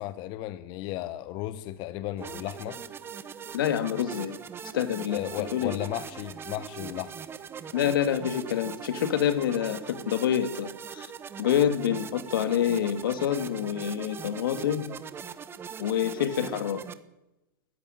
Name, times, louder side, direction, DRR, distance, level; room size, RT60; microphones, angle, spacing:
voice 1, 0.0-2.8 5.1-7.1, left 14 dB, 40° left, 14 dB, 1.1 m, -35 dB
sound 1, 2.2-16.9, right 7 dB, 20° right, 1.3 m, -41 dB
voice 2, 3.5-4.4 4.7-5.3 5.5-5.8 7.7-11.1 11.4-14.8 15.8-16.8, left 9 dB, 75° left, 11 dB, 2.4 m, -27 dB
19.5 x 14.5 x 9.2 m, 0.94 s
hypercardioid pair, 130°, 12 cm